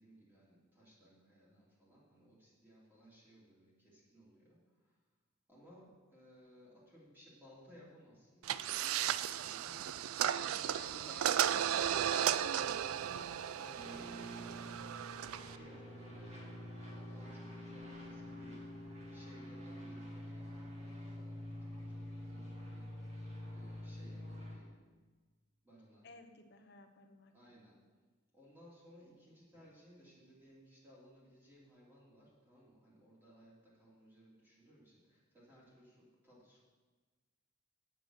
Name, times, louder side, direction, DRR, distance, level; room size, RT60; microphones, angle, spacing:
voice 1, 0.0-5.0 5.5-8.9 9.3-10.0 10.5-11.8 12.6-16.5 16.8-23.2 23.5-24.7 25.6-26.1 27.3-27.8 28.3-36.6, equal, 10° right, -7 dB, 3.0 m, -61 dB
sound 1, 8.4-15.6, right 10 dB, 80° right, 0.3 m, -35 dB
voice 2, 10.7-11.5 11.7-12.1 26.0-27.3, left 2 dB, 50° left, 5 dB, 0.9 m, -56 dB
sound 2, 13.8-24.5, equal, 30° right, 2.2 m, -47 dB
8.2 x 7.6 x 6.6 m, 1.4 s
head